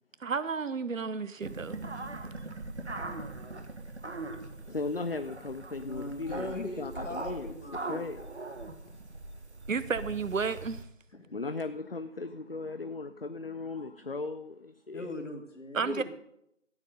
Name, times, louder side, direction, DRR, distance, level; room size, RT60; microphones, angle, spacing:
voice 1, 0.2-1.8 9.7-10.8 15.7-16.0, right 5 dB, 80° right, 14 dB, 0.7 m, -32 dB
sound 1, 1.4-10.8, right 2 dB, 60° right, 1.6 m, -41 dB
voice 2, 4.7-7.5 7.9-8.2 11.3-15.1, left 3 dB, 50° left, 11 dB, 0.5 m, -37 dB
voice 3, 5.8-8.3 8.6-8.7 11.1-11.3 14.9-16.0, left 1 dB, 65° left, 2 dB, 2.6 m, -40 dB
14.0 x 9.0 x 5.3 m, 0.77 s
figure-of-eight pair, 165°, 39 cm